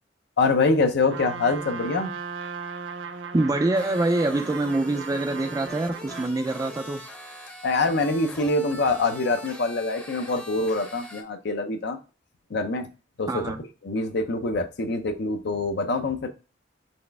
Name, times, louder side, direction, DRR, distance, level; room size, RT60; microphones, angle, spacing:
voice 1, 0.4-2.1 7.6-12.0 12.5-12.9 13.2-13.3 13.8-16.3, left 3 dB, 65° left, 7 dB, 0.6 m, -25 dB
Trumpet, 1.1-6.4, right 5 dB, 75° right, 0.5 m, -37 dB
voice 2, 3.3-7.0 13.3-13.6, right 2 dB, 20° right, 6 dB, 0.3 m, -25 dB
sound 1, 3.7-11.2, left 1 dB, 5° left, 0.7 m, -42 dB
4.2 x 3.2 x 3.4 m, 0.32 s
head